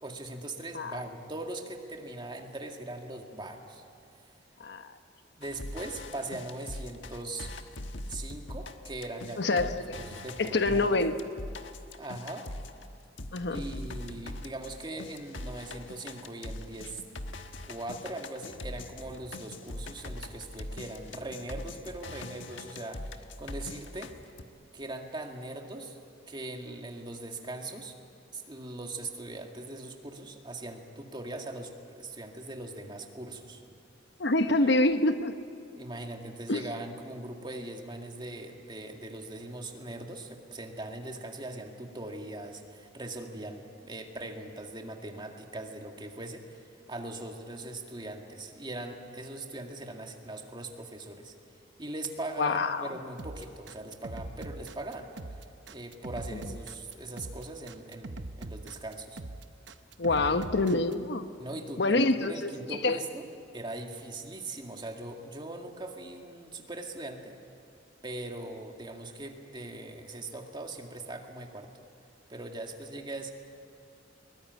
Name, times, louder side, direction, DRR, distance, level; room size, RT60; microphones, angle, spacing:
voice 1, 0.0-3.8 5.4-7.5 8.1-9.7 10.0-11.0 12.0-12.5 13.5-17.0 17.6-24.2 24.7-26.0 26.3-28.0 28.3-33.6 35.8-51.3 51.8-55.1 55.7-59.2 60.1-60.4 61.4-63.3 63.5-67.4 68.0-71.7 72.3-73.3, right 2 dB, 25° right, 3 dB, 2.1 m, -40 dB
sound 1, 5.4-12.9 13.2-24.4, left 2 dB, 85° left, 1.3 m, -42 dB
voice 2, 9.4-9.8 10.4-11.1 13.3-13.6 34.2-35.3 36.5-36.6 52.4-52.9 60.0-61.3 61.8-62.5 62.8-63.0, left 2 dB, 65° left, 9 dB, 1.1 m, -26 dB
sound 2, 53.2-60.9, right 2 dB, 65° right, 1.0 m, -42 dB
22.0 x 20.5 x 9.5 m, 2.5 s
head